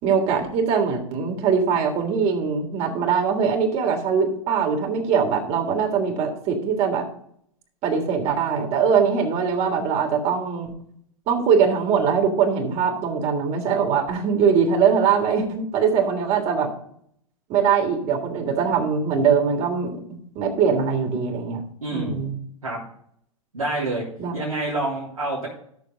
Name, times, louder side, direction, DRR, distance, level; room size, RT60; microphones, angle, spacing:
voice 1, 0.0-7.1 7.8-10.7 11.3-16.7 17.5-20.0 20.3-21.6 21.9-22.3 24.2-24.3, right 6 dB, 35° right, 3 dB, 3.1 m, -22 dB
voice 2, 21.8-22.2 22.6-22.8 23.5-24.0 24.3-25.5, right 2 dB, 90° right, -6 dB, 3.1 m, -27 dB
13.0 x 7.0 x 4.0 m, 0.66 s
hypercardioid pair, 105°, 18 cm